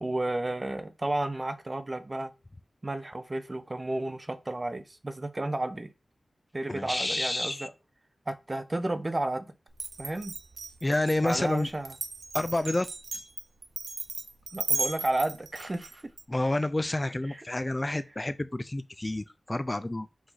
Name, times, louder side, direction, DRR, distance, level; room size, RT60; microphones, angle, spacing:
voice 1, 0.0-2.3 2.8-5.9 6.5-7.7 8.3-9.5 10.0-10.4 11.2-11.9 14.5-16.1, right 2 dB, 35° right, 0.6 m, -32 dB
voice 2, 6.7-7.7 10.8-11.7 12.3-12.9 13.1-13.2 16.3-20.1, left 2 dB, 30° left, 0.3 m, -29 dB
Glass, 9.7-16.2, right 4 dB, 90° right, 0.4 m, -35 dB
4.7 x 2.6 x 3.9 m
cardioid pair, 50°, 0 cm